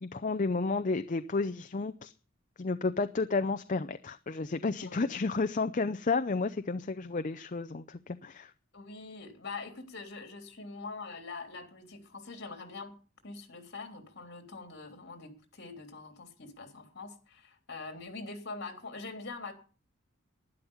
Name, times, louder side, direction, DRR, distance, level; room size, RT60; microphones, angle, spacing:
voice 1, 0.0-2.1 2.6-8.5, left 3 dB, 40° left, 0.6 m, -31 dB
voice 2, 8.7-12.9 13.2-19.5, left 3 dB, 55° left, 3.4 m, -44 dB
11.5 x 11.0 x 7.1 m
head